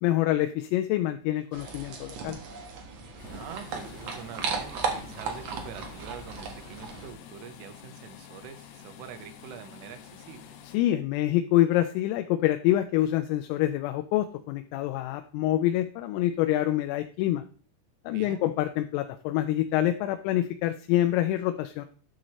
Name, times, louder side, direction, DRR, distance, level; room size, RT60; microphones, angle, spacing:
voice 1, 0.0-2.4 10.7-17.4 18.1-21.9, left 14 dB, 90° left, 7 dB, 3.3 m, -26 dB
sound 1, 1.5-7.1, right 5 dB, 75° right, 1.7 m, -36 dB
sound 2, 3.2-10.8, left 9 dB, 75° left, 2.6 m, -48 dB
voice 2, 3.3-10.6 18.1-18.5, right 8 dB, 90° right, 8 dB, 3.4 m, -45 dB
10.5 x 6.3 x 3.1 m, 0.43 s
omnidirectional pair, 5.8 m